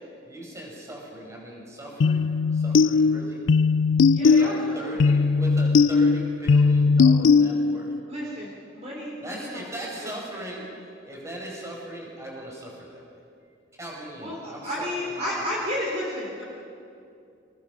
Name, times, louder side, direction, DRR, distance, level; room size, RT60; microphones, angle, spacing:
voice 1, 0.2-2.3 2.5-3.5 4.2-7.9 9.2-10.7 11.0-13.0 13.8-15.4, right 1 dB, 15° right, -2 dB, 5.3 m, -39 dB
sound 1, 2.0-8.0, left 4 dB, 90° left, 0.4 m, -19 dB
voice 2, 4.1-5.1 8.1-9.7 10.0-10.5 14.2-16.4, left 1 dB, 35° right, -5 dB, 3.7 m, -32 dB
27.5 x 19.0 x 6.0 m, 2.5 s
head